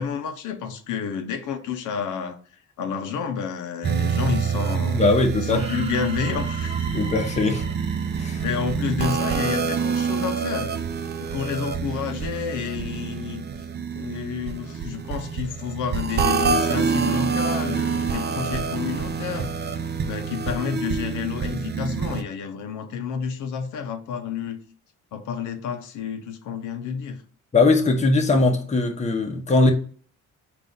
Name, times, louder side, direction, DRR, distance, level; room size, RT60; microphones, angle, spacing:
voice 1, 0.0-2.4 2.8-5.0 5.4-6.7 8.4-10.7 11.3-13.6 13.9-19.5 20.1-24.6 25.1-27.2, left 7 dB, 80° left, 0.6 m, -30 dB
sound 1, 3.8-22.2, right 6 dB, 35° right, 0.5 m, -27 dB
voice 2, 4.9-5.7 6.9-7.7 8.2-8.4 27.5-29.7, left 3 dB, 25° left, 0.8 m, -20 dB
sound 2, 5.5-9.6, right 2 dB, 20° right, 1.0 m, -39 dB
3.8 x 2.5 x 3.6 m
cardioid pair, 90°, 30 cm